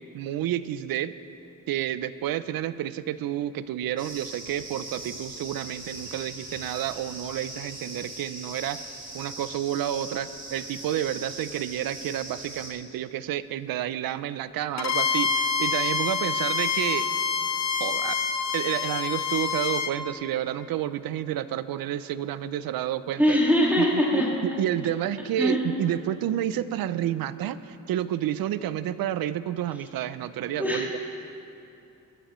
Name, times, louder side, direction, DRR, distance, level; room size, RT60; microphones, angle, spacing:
voice 1, 0.1-1.1 1.7-8.8 9.1-17.1 17.8-18.3 18.5-23.4 23.8-31.0, right 11 dB, 90° right, 15 dB, 0.5 m, -30 dB
sound 1, 4.0-12.7, right 2 dB, 35° right, 3.0 m, -40 dB
Bowed string instrument, 14.8-20.0, left 5 dB, 50° left, 0.7 m, -27 dB
voice 2, 23.2-24.3 25.4-25.6 30.6-30.8, equal, 5° right, -4 dB, 2.0 m, -21 dB
21.5 x 11.5 x 3.1 m, 2.7 s
cardioid pair, 95°, 34 cm